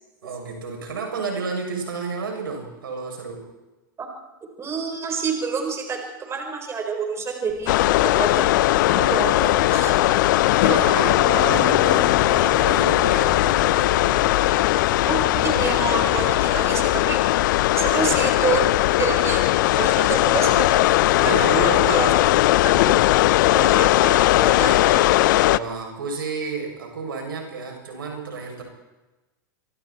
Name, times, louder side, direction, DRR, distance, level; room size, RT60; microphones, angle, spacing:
voice 1, 0.2-3.5 8.9-14.6 21.1-22.0 25.4-28.6, right 5 dB, 85° right, 2 dB, 7.4 m, -31 dB
voice 2, 4.6-7.7 8.0-8.6 9.1-9.3 9.7-9.9 10.7-10.9 15.1-17.2 17.8-18.7 19.0-20.9 21.2-22.1 22.6-22.9 23.5-25.1, right 5 dB, 25° right, 3 dB, 4.7 m, -28 dB
sound 1, 7.5-21.3, left 5 dB, 40° left, 6.5 m, -40 dB
sound 2, 7.7-25.6, left 16 dB, 65° left, 0.7 m, -19 dB
26.5 x 23.5 x 4.5 m, 1.1 s
hypercardioid pair, 105°, 11 cm